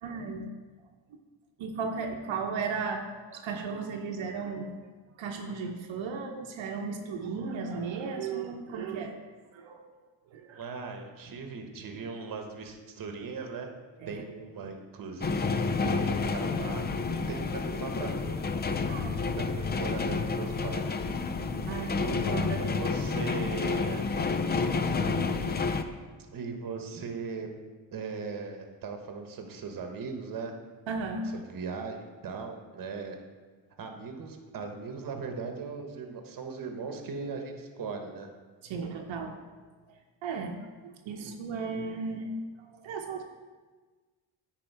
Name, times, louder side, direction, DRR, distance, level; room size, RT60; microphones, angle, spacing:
voice 1, 0.0-0.5 1.1-1.2 1.6-4.7 5.2-9.2 9.5-9.9 10.3-10.6 14.0-14.2 18.9-19.4 21.7-22.7 23.1-23.3 25.5-25.6 30.9-31.3 38.6-39.4 39.9-40.0 40.2-42.3 42.6-43.2, right 4 dB, 80° right, 2 dB, 0.9 m, -35 dB
voice 2, 10.5-13.7 14.1-15.4 15.8-18.4 19.4-20.8 22.5-24.1 26.3-27.5 27.9-30.5 31.3-33.2 33.8-38.3, right 4 dB, 45° right, 4 dB, 1.1 m, -39 dB
sound 1, 15.2-25.8, left 4 dB, 25° left, 0.3 m, -30 dB
9.7 x 4.5 x 4.6 m, 1.4 s
cardioid pair, 115°, 45 cm